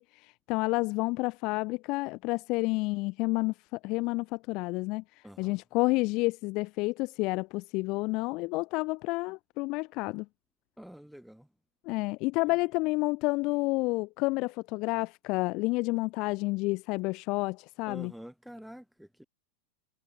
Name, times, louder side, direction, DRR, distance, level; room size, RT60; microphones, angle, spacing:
voice 1, 0.0-5.0 5.4-10.3 11.9-18.1, left 24 dB, 40° left, 0.3 m, -30 dB
voice 2, 5.2-5.6 10.8-11.5 12.4-12.6 17.9-19.2, equal, ahead, 4.5 m, -47 dB
figure-of-eight pair, 90°, 0 cm